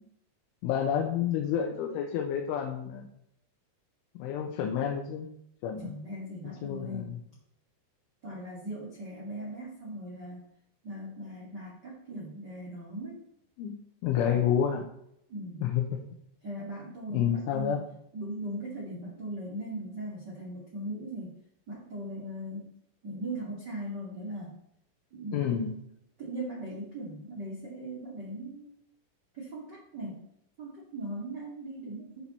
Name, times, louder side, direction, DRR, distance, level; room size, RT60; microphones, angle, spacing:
voice 1, 0.6-3.1 4.2-5.3 5.6-5.9 6.6-7.0 13.6-14.9 15.6-16.0 17.1-17.8 25.3-25.8, left 8 dB, 80° left, 1 dB, 3.3 m, -29 dB
voice 2, 5.8-7.1 8.2-10.4 10.8-13.2 15.3-15.7 16.4-17.8 18.1-21.4 21.7-22.7 23.0-24.5 25.1-25.5 26.2-28.7 29.3-30.2 30.6-32.3, right 1 dB, 45° right, -4 dB, 1.3 m, -39 dB
13.0 x 5.9 x 4.3 m, 0.74 s
omnidirectional pair, 5.8 m